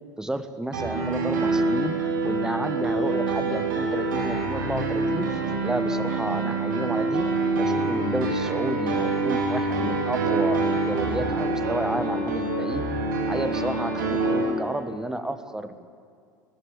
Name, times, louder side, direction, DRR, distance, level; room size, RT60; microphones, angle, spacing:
voice 1, 0.2-7.3 7.5-12.9 13.3-15.9, right 1 dB, 5° right, 11 dB, 1.3 m, -32 dB
Piano, 0.7-14.4, right 3 dB, 75° right, 3.7 m, -26 dB
19.5 x 14.5 x 9.5 m, 2.3 s
hypercardioid pair, 80°, 10 cm